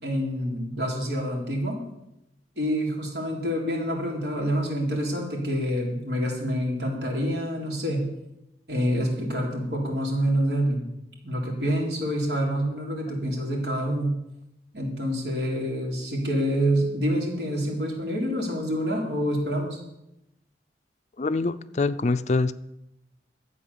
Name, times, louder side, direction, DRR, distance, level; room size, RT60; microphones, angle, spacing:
voice 1, 0.0-1.8 2.6-8.1 8.7-10.9 11.2-14.2 14.7-19.8, equal, 75° right, 0 dB, 3.7 m, -27 dB
voice 2, 21.2-22.5, left 3 dB, 40° left, 13 dB, 0.4 m, -24 dB
12.5 x 8.5 x 7.1 m, 0.88 s
head